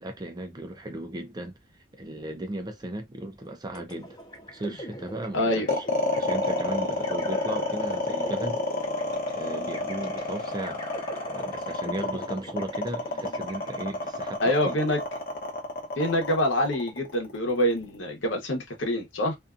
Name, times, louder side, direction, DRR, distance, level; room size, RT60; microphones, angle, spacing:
voice 1, 0.0-1.5 2.0-4.2 4.5-5.8 6.1-8.6 9.3-10.8 11.3-14.8, right 1 dB, 20° right, 0.5 m, -36 dB
sound 1, 3.7-14.2, equal, 20° left, 0.6 m, -43 dB
voice 2, 5.3-5.7 14.4-15.0 16.0-19.4, left 1 dB, 85° left, 0.9 m, -25 dB
sound 2, 5.7-17.9, left 2 dB, 50° left, 0.8 m, -29 dB
2.6 x 2.3 x 2.4 m
head